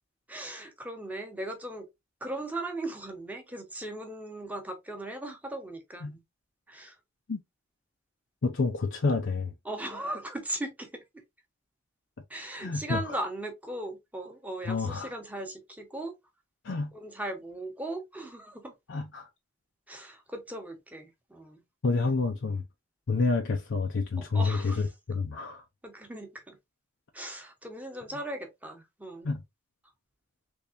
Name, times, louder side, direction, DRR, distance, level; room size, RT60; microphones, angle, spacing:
voice 1, 0.3-1.9 2.2-6.2 6.7-7.0 9.6-10.9 12.3-16.1 16.9-18.7 19.9-21.6 24.2-24.9 25.8-26.6 27.1-29.3, right 1 dB, 5° right, 1.0 m, -38 dB
voice 2, 8.4-9.5 12.6-13.2 14.7-15.1 16.6-16.9 18.9-19.3 21.8-22.6 23.1-25.6 29.2-29.4, left 4 dB, 60° left, 0.6 m, -28 dB
3.5 x 3.5 x 2.5 m
head